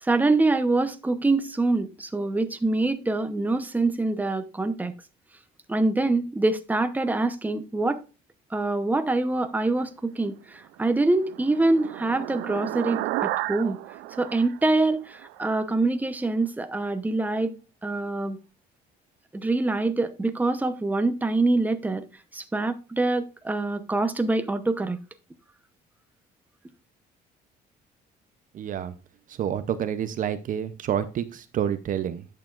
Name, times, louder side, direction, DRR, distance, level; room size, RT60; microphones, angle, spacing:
voice 1, 0.0-4.9 5.7-8.0 8.5-13.8 14.2-17.6 17.8-18.4 19.3-22.0 22.3-25.0, right 2 dB, 10° right, 0.9 m, -25 dB
sound 1, 10.7-15.4, right 16 dB, 90° right, 0.5 m, -33 dB
voice 2, 28.5-28.9 29.3-32.3, right 9 dB, 50° right, 0.7 m, -28 dB
10.5 x 6.8 x 2.5 m
cardioid pair, 110°, 17 cm